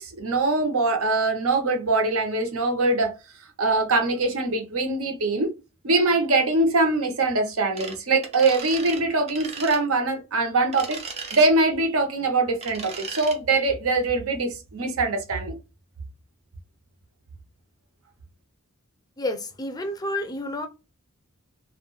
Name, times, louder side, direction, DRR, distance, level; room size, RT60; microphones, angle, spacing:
voice 1, 0.0-3.1 3.6-5.5 5.8-11.0 11.3-15.5, right 3 dB, 80° right, 0.7 m, -23 dB
sound 1, 7.8-8.0 8.2-9.0 9.3-9.8 10.7-11.4 12.6-13.4, right 4 dB, 30° right, 0.5 m, -36 dB
voice 2, 19.2-20.7, left 1 dB, 20° left, 0.4 m, -30 dB
2.4 x 2.1 x 3.0 m
head